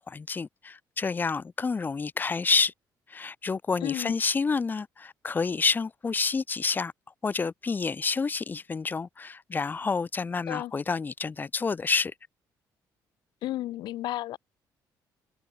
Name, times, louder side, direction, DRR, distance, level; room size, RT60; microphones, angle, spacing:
voice 1, 0.0-2.7 3.1-6.9 7.2-12.1, left 4 dB, 25° left, 0.5 m, -29 dB
voice 2, 3.8-4.1 10.5-10.7 13.4-14.4, left 15 dB, 80° left, 1.1 m, -32 dB
cardioid pair, 95°, 8 cm